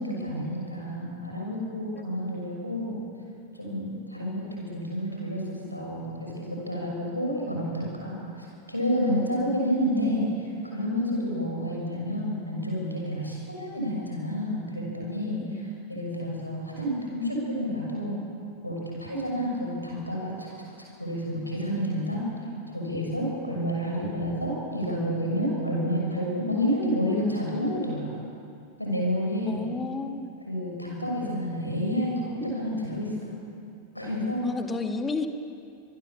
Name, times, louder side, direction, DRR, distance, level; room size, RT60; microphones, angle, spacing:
voice 1, 0.0-3.0 3.5-15.4 15.9-18.2 18.6-20.5 20.8-22.2 22.7-28.2 28.8-29.6 30.5-33.1 33.9-34.5, equal, 85° left, -1 dB, 6.3 m, -29 dB
voice 2, 15.4-15.8 29.5-30.4 34.4-35.3, left 4 dB, 15° left, 6 dB, 1.8 m, -33 dB
25.5 x 21.0 x 7.2 m, 2.4 s
figure-of-eight pair, 90°, 0 cm